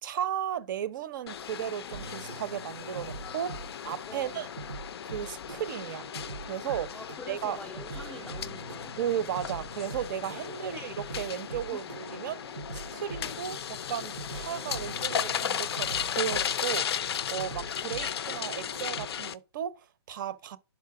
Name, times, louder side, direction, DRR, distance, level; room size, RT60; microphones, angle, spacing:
voice 1, 0.0-4.5 5.0-6.1 6.4-7.0 7.3-7.6 9.0-20.6, right 10 dB, 50° right, 0.6 m, -35 dB
sound 1, 1.3-19.3, left 9 dB, 70° left, 0.4 m, -36 dB
sound 2, 1.9-19.1, right 4 dB, 90° right, 0.6 m, -44 dB
voice 2, 4.1-4.5 6.9-9.0 10.4-10.8 11.7-11.9, left 3 dB, 5° left, 0.4 m, -46 dB
5.4 x 4.7 x 4.6 m
hypercardioid pair, 140°, 14 cm